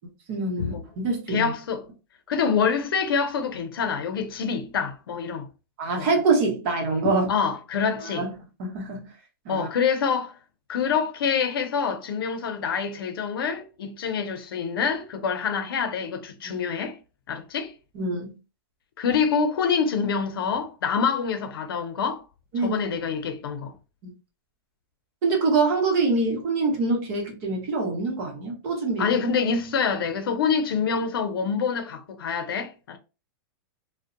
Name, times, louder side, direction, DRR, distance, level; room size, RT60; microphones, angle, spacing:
voice 1, 0.3-1.5 5.8-7.3 8.0-8.3 8.6-9.1 9.4-9.7 16.4-16.6 17.9-18.3 22.5-22.7 24.0-24.1 25.2-29.2, right 3 dB, 35° right, 0.8 m, -25 dB
voice 2, 1.3-1.9 2.3-5.5 6.0-6.1 7.3-8.2 9.5-10.4 10.7-17.0 17.3-17.7 19.0-22.2 22.6-23.7 29.0-33.0, left 6 dB, 85° left, 0.6 m, -26 dB
2.6 x 2.1 x 2.4 m
supercardioid pair, 170°, 12 cm